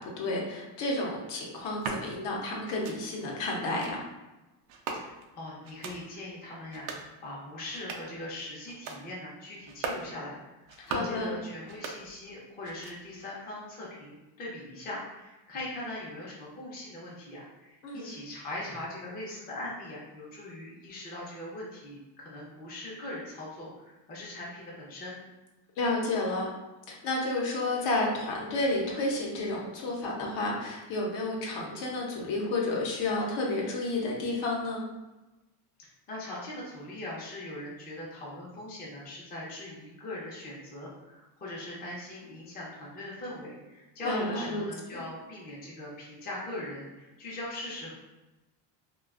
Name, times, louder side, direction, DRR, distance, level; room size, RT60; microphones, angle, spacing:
voice 1, 0.0-4.0 10.9-11.3 17.8-18.1 25.8-26.5 26.9-34.8 44.0-44.7 44.9-45.0, left 2 dB, 60° left, -2 dB, 0.7 m, -31 dB
sound 1, 1.6-2.0 2.6-3.0 3.6-3.9 4.7-5.3 5.6-6.0 6.6-7.1 7.6-8.2 8.6-9.0 9.6-10.1 10.6-11.2 11.6-12.4 12.6-13.2, right 4 dB, 85° right, 0.6 m, -39 dB
voice 2, 4.9-25.2 35.8-47.9, left 1 dB, 20° left, -5 dB, 0.5 m, -40 dB
2.4 x 2.2 x 2.3 m, 1.1 s
cardioid pair, 130°, 49 cm